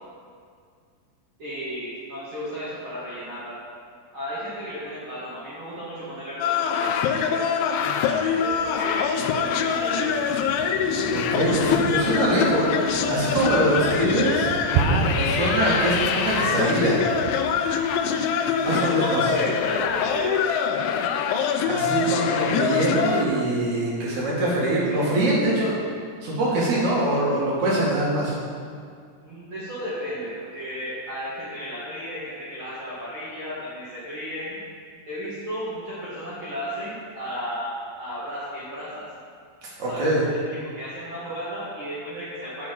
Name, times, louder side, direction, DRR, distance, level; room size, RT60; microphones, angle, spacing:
voice 1, 1.4-3.6 4.1-7.5 7.8-10.3 18.7-20.4 29.2-34.6 35.1-39.1 39.9-42.7, equal, 65° right, -10 dB, 1.2 m, -34 dB
sound 1, 6.4-23.2, left 7 dB, 80° left, 2.9 m, -24 dB
Thunder, 8.5-20.4, right 5 dB, 90° right, 2.3 m, -32 dB
voice 2, 11.1-14.5 15.1-17.0 18.6-19.3 21.6-25.8 26.2-28.3 39.6-40.2, right 1 dB, 50° right, -6 dB, 2.6 m, -23 dB
9.4 x 8.2 x 5.4 m, 2.1 s
omnidirectional pair, 5.6 m